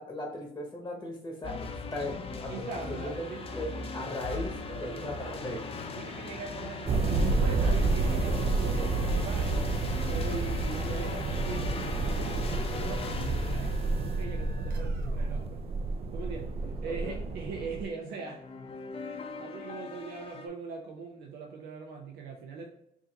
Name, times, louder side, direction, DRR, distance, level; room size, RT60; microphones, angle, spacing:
voice 1, 0.0-3.3 3.5-5.8 16.6-17.2, left 1 dB, 15° left, 0 dB, 0.9 m, -38 dB
sound 1, 1.4-16.4 18.2-20.5, left 4 dB, 35° left, 0.5 m, -39 dB
sound 2, 1.8-16.5, right 2 dB, 60° right, 1.2 m, -52 dB
voice 2, 2.5-3.5 4.7-5.6 6.0-9.6 10.0-15.6 16.1-16.5 16.8-18.4 19.0-22.7, right 5 dB, 75° right, 1 dB, 0.6 m, -41 dB
sound 3, 6.9-17.8, right 3 dB, 35° right, 0.4 m, -30 dB
4.7 x 2.6 x 2.8 m, 0.80 s
cardioid pair, 110°, 17 cm